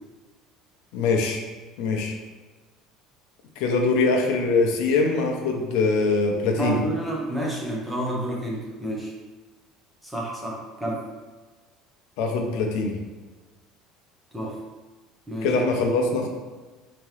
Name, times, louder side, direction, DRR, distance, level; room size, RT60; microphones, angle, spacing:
voice 1, 0.9-1.4 1.8-2.1 3.6-6.8 12.2-13.0 15.4-16.3, left 3 dB, 70° left, 2 dB, 0.6 m, -23 dB
voice 2, 6.5-9.1 10.0-11.0 14.3-14.6 15.3-15.6, right 1 dB, 5° right, -4 dB, 0.7 m, -29 dB
3.5 x 2.9 x 3.2 m, 1.3 s
cardioid pair, 170°, 0 cm